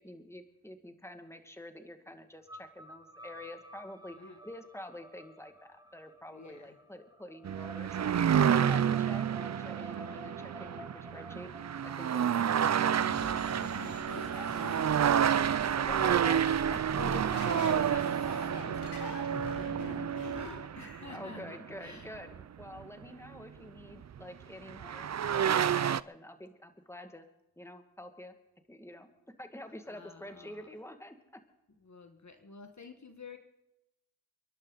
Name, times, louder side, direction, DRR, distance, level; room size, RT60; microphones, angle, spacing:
voice 1, 0.0-8.1 8.4-11.5 11.8-13.0 13.3-13.8 15.3-15.4 15.8-17.0 21.1-25.1 25.4-27.3 27.6-28.4 28.7-29.1 29.4-31.4, left 1 dB, 5° left, 6 dB, 2.0 m, -47 dB
sound 1, 2.5-20.6, right 1 dB, 10° right, 1.8 m, -52 dB
voice 2, 6.3-6.8 14.5-16.7 16.9-22.1 29.8-30.7 31.8-33.4, left 4 dB, 45° left, 6 dB, 1.5 m, -49 dB
sound 2, 7.4-22.8 24.2-24.3 24.7-26.0, right 8 dB, 45° right, 0.4 m, -29 dB
sound 3, 13.0-21.0, left 2 dB, 80° left, 3.7 m, -44 dB
29.0 x 11.5 x 4.0 m, 0.93 s
cardioid pair, 45°, 40 cm